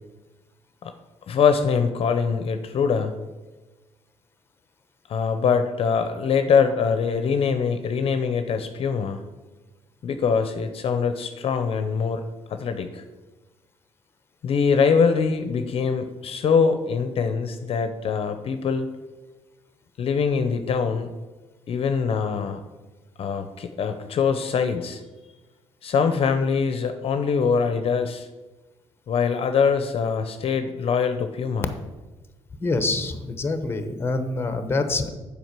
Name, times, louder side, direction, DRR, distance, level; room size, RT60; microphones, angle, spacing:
voice 1, 1.3-3.2 5.1-9.2 10.0-12.2 12.5-13.0 14.4-18.9 20.0-21.1 21.7-22.6 23.2-25.0 25.8-28.3 29.1-31.7, left 6 dB, 55° left, 8 dB, 0.7 m, -23 dB
voice 2, 32.6-35.1, left 3 dB, 20° left, 8 dB, 0.9 m, -26 dB
7.7 x 5.0 x 6.7 m, 1.1 s
cardioid pair, 105°, 11 cm